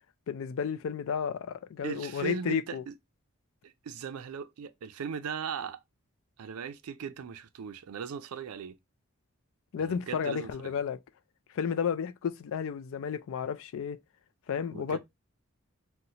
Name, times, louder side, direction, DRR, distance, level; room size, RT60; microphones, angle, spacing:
voice 1, 0.3-2.8 9.7-11.0 11.5-14.0 14.5-15.0, left 7 dB, 65° left, 0.3 m, -32 dB
voice 2, 1.8-2.9 3.6-5.8 6.4-8.8 9.8-10.7 14.7-15.0, right 6 dB, 85° right, 0.4 m, -38 dB
4.0 x 2.1 x 2.7 m
head